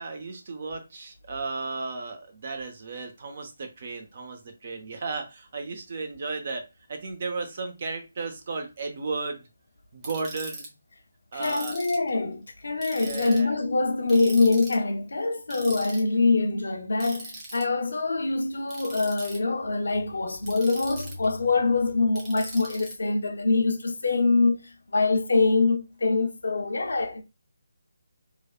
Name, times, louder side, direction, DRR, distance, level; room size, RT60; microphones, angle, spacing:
voice 1, 0.0-9.4 9.9-10.7 11.3-11.8 13.0-13.5, right 3 dB, 45° right, 0.7 m, -34 dB
Ratchet pawl, 10.0-10.7 11.4-12.1 12.8-13.4 14.1-14.8 15.5-16.0 17.0-17.6 18.7-19.4 20.4-21.3 22.2-22.9, right 2 dB, 20° right, 1.0 m, -40 dB
voice 2, 11.3-27.2, left 3 dB, 65° left, 0.6 m, -24 dB
3.2 x 2.3 x 2.2 m
figure-of-eight pair, 150°, 0 cm